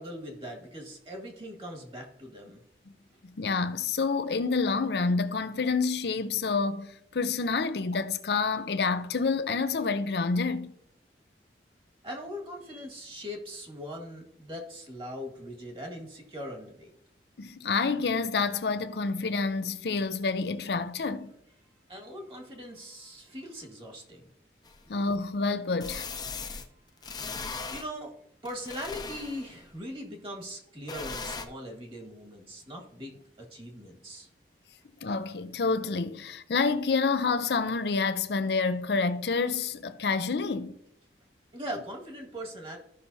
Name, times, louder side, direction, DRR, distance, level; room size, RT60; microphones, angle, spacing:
voice 1, 0.0-2.6 12.0-16.9 21.9-24.2 27.7-28.1 28.4-34.3 41.5-42.8, equal, 30° right, 1.8 m, -40 dB
voice 2, 3.2-10.7 17.4-21.3 24.9-26.1 35.0-40.8, left 4 dB, 65° left, 0.6 m, -28 dB
sound 1, 24.6-24.7 25.8-26.6 27.0-27.8 28.4-29.6 30.9-31.4, left 4 dB, 25° left, 0.6 m, -38 dB
14.0 x 5.8 x 2.7 m
head